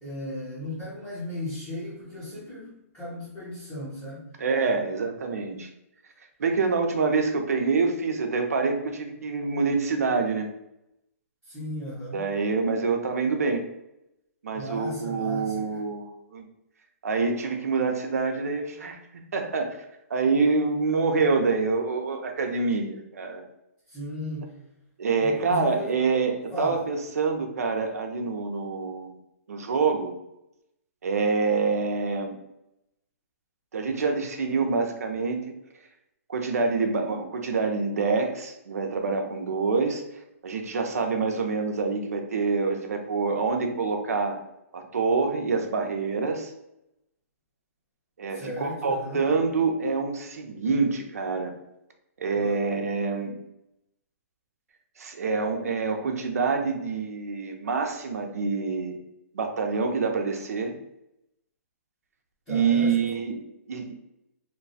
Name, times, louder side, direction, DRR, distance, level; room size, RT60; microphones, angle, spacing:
voice 1, 0.0-4.2 11.4-12.2 14.5-15.8 23.9-24.6 25.2-25.9 26.5-26.8 48.3-49.4 52.3-52.6 62.5-62.9, left 1 dB, 10° left, -13 dB, 0.9 m, -36 dB
voice 2, 4.4-5.7 6.4-10.5 12.1-13.6 14.4-16.5 17.0-19.0 19.3-19.8 20.1-23.4 25.0-29.2 29.5-30.1 31.0-32.4 33.7-35.4 36.3-40.0 40.4-44.4 44.7-46.5 48.2-51.5 52.2-53.3 55.0-58.9 59.3-60.7 62.5-63.4 63.7-63.9, right 4 dB, 75° right, 4 dB, 0.8 m, -26 dB
3.2 x 2.3 x 4.0 m, 0.86 s
hypercardioid pair, 180°, 8 cm